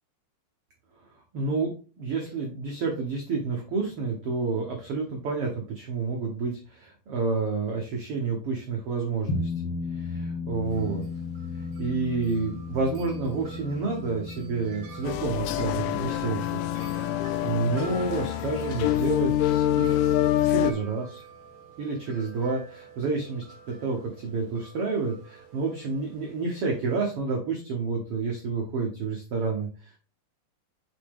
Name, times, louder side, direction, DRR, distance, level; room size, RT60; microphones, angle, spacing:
voice 1, 1.3-1.7 2.0-9.5 9.9-11.0 11.8-16.4 17.4-20.2 20.5-21.2 21.8-30.0, right 4 dB, 85° right, 1 dB, 1.2 m, -29 dB
sound 1, 9.3-20.0, left 4 dB, 60° left, 1.2 m, -36 dB
Wind chime, 10.7-27.2, right 4 dB, 70° right, 1.0 m, -49 dB
sound 2, 15.0-20.7, left 12 dB, 80° left, 2.0 m, -26 dB
8.3 x 4.0 x 3.7 m, 0.36 s
omnidirectional pair, 4.3 m